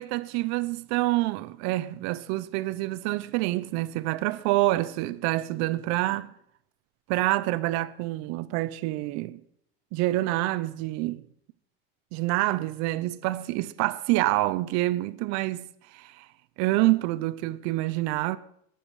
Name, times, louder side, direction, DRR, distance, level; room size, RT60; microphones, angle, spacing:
voice 1, 0.0-6.3 7.1-9.4 9.9-11.2 12.1-15.7 15.9-16.2 16.6-18.4, right 18 dB, 65° right, 0.7 m, -27 dB
19.5 x 7.2 x 4.8 m
supercardioid pair, 120°, 30 cm